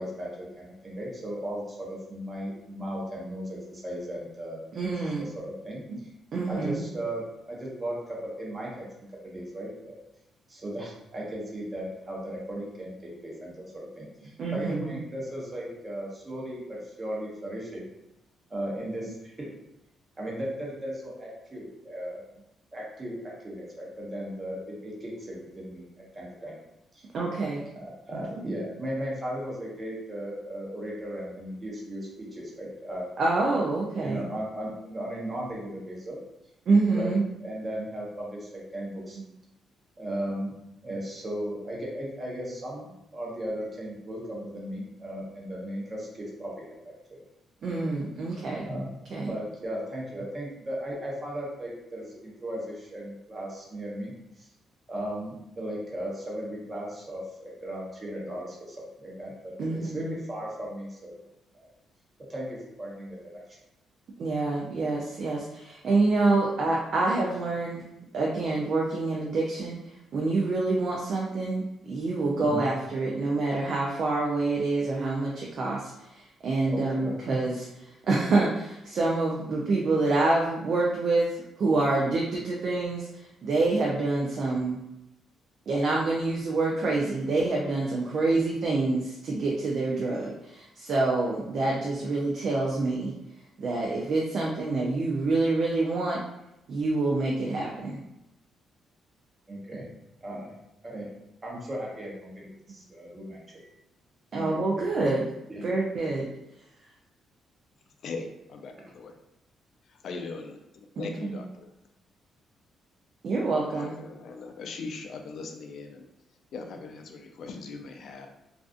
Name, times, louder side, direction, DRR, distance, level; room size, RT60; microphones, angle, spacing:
voice 1, 0.0-4.6 5.1-5.8 6.5-8.8 9.2-10.0 10.5-17.8 18.5-19.5 20.2-22.2 22.7-26.6 26.9-27.0 28.0-33.1 34.0-36.2 36.9-37.1 37.4-39.2 40.0-40.5 40.8-47.2 48.6-48.9 49.3-54.5 54.9-61.1 61.6-61.7 62.3-63.2 72.4-72.6 76.7-77.1 99.5-99.9 100.2-100.5 100.8-101.1 101.4-103.7 104.3-104.9 105.5-105.6, equal, 30° right, -4 dB, 0.8 m, -36 dB
voice 2, 4.7-5.3 5.9-6.0 6.3-6.9 14.4-15.0 27.1-27.6 28.1-28.4 33.2-34.2 36.7-37.2 47.6-48.7 49.1-49.3 59.6-60.2 64.2-67.8 68.1-69.8 70.1-77.7 78.0-84.8 85.7-93.1 93.6-96.2 96.7-98.0 104.3-105.2 105.6-106.3 111.0-111.3 113.2-113.9, right 3 dB, 55° right, -2 dB, 0.4 m, -27 dB
voice 3, 108.0-109.2 109.9-110.6 111.0-111.7 113.7-116.1 116.5-118.3, left 4 dB, 65° left, 4 dB, 0.3 m, -39 dB
2.4 x 2.3 x 2.4 m, 0.90 s
cardioid pair, 90°, 0 cm